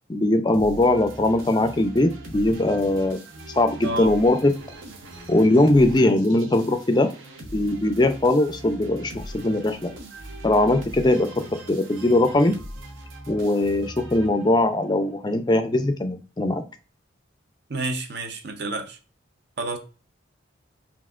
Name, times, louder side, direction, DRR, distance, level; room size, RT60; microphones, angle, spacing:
voice 1, 0.1-3.2 3.5-4.5 5.3-7.1 7.5-9.9 10.4-11.3 11.7-12.6 13.3-16.6, left 1 dB, 20° left, 0.4 m, -20 dB
sound 1, 0.5-14.8, right 1 dB, 75° right, 0.9 m, -41 dB
voice 2, 3.8-4.2 17.7-19.0 19.6-19.8, right 2 dB, 55° right, 0.7 m, -29 dB
5.6 x 2.8 x 2.4 m
head